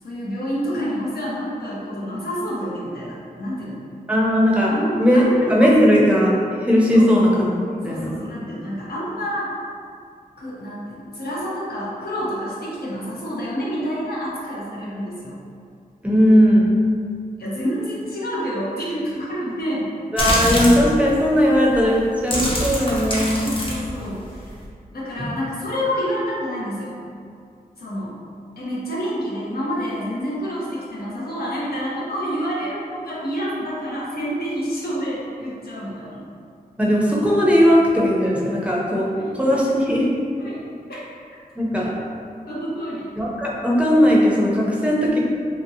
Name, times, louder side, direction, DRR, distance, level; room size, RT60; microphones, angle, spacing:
voice 1, 0.0-3.8 4.7-6.0 6.9-7.1 7.8-9.5 10.4-15.4 17.4-19.9 23.1-24.6 24.9-27.0 27.8-28.2 28.6-36.2 39.1-39.3 40.4-40.6 40.9-41.0 42.5-43.1, equal, 90° left, -7 dB, 0.7 m, -28 dB
voice 2, 4.1-4.7 5.0-6.3 6.6-7.6 7.8-8.1 16.0-16.7 20.1-23.4 25.2-25.3 36.8-39.0 39.3-40.1 41.6-41.9 43.2-45.2, equal, 10° right, -5 dB, 0.5 m, -17 dB
sound 1, 20.2-20.9 21.6-21.8 22.2-24.7, equal, 35° left, 0.7 m, -24 dB
2.8 x 2.7 x 2.6 m, 2.3 s
wide cardioid pair, 75°, 16 cm